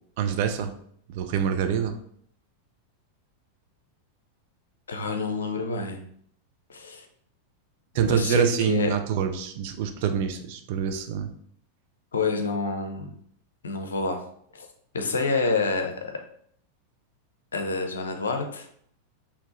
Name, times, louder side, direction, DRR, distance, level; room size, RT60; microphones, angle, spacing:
voice 1, 0.2-0.7 1.1-2.0 7.9-11.3, right 8 dB, 50° right, 6 dB, 0.6 m, -26 dB
voice 2, 4.9-6.0 6.7-7.0 8.0-8.9 12.1-13.1 13.6-14.2 14.5-14.7 14.9-16.2 17.5-18.7, left 4 dB, 70° left, 5 dB, 0.7 m, -28 dB
4.7 x 2.9 x 3.8 m, 0.65 s
figure-of-eight pair, 90°, 0 cm